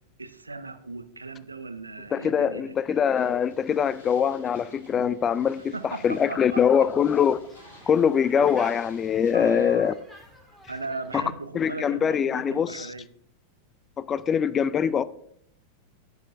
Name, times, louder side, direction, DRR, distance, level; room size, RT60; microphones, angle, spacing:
voice 1, 0.2-3.0 5.7-6.8 9.3-9.9 10.7-13.1, right 3 dB, 80° right, 0.6 m, -37 dB
voice 2, 2.1-5.7 6.0-7.4 7.9-9.9 11.1-11.2 11.5-12.9 14.0-15.0, left 7 dB, 25° left, 0.4 m, -23 dB
sound 1, 3.1-9.6, equal, 65° left, 3.8 m, -54 dB
sound 2, 6.2-11.3, equal, 10° left, 1.9 m, -45 dB
14.5 x 6.5 x 2.5 m
figure-of-eight pair, 90°, 0 cm